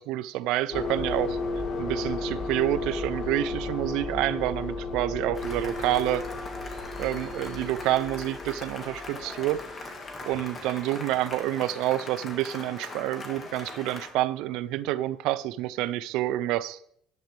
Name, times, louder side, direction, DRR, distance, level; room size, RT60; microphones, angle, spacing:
voice 1, 0.0-1.4 1.8-6.2 7.0-9.6 10.2-16.8, right 15 dB, 70° right, 0.6 m, -28 dB
sound 1, 0.7-10.2, left 3 dB, 50° left, 1.9 m, -34 dB
Cheering / Applause, 5.3-14.1, left 2 dB, 25° left, 1.9 m, -40 dB
13.0 x 11.0 x 3.4 m
cardioid pair, 140°, 0 cm